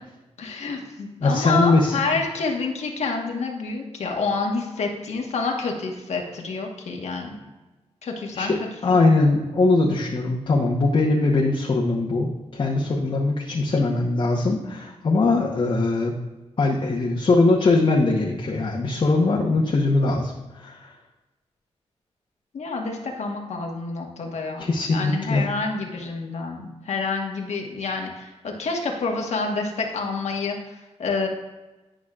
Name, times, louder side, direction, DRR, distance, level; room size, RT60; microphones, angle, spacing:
voice 1, 0.4-7.4 8.0-8.5 8.9-9.0 22.5-31.3, left 4 dB, 80° left, 1 dB, 1.3 m, -28 dB
voice 2, 1.2-2.0 8.3-16.1 16.6-20.9 24.6-25.5, left 3 dB, 45° left, -3 dB, 1.0 m, -21 dB
11.0 x 6.1 x 2.4 m, 1.1 s
wide cardioid pair, 105°, 11 cm